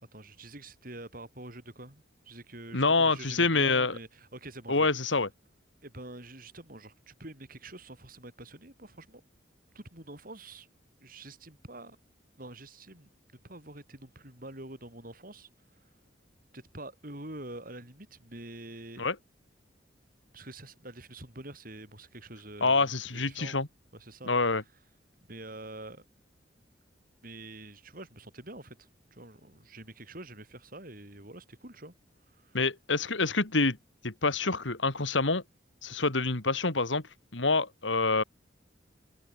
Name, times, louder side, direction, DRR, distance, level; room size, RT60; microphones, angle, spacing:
voice 1, 0.1-5.1 5.8-9.2 9.7-10.7 11.0-12.0 12.4-13.1 13.4-15.9 16.5-19.1 20.3-23.6 23.9-24.6 25.3-26.1 27.2-31.9 32.3-32.6, right 2 dB, 50° right, 7.0 m, -46 dB
voice 2, 2.7-3.9 4.7-5.3 19.0-19.1 22.6-23.7 24.3-24.6 32.5-33.8 34.0-35.4 35.8-37.0 37.3-38.2, left 3 dB, 85° left, 2.6 m, -26 dB
head